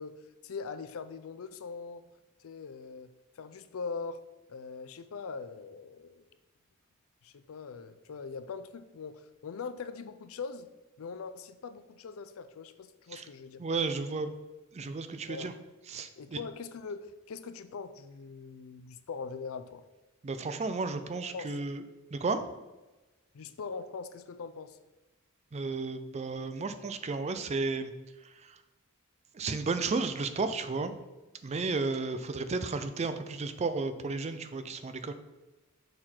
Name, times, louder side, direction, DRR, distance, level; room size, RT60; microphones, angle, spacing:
voice 1, 0.0-2.0 2.4-3.1 3.4-4.2 4.5-6.2 7.2-10.7 11.0-13.6 15.3-15.5 16.2-19.8 21.3-21.6 23.3-24.8, left 5 dB, 70° left, 11 dB, 0.4 m, -41 dB
voice 2, 13.6-14.3 14.7-15.5 15.9-16.4 20.2-21.8 22.1-22.4 25.5-27.9 28.2-28.6 29.3-30.9 31.4-35.1, right 4 dB, 30° right, 10 dB, 0.4 m, -33 dB
6.6 x 3.8 x 4.4 m, 1.1 s
head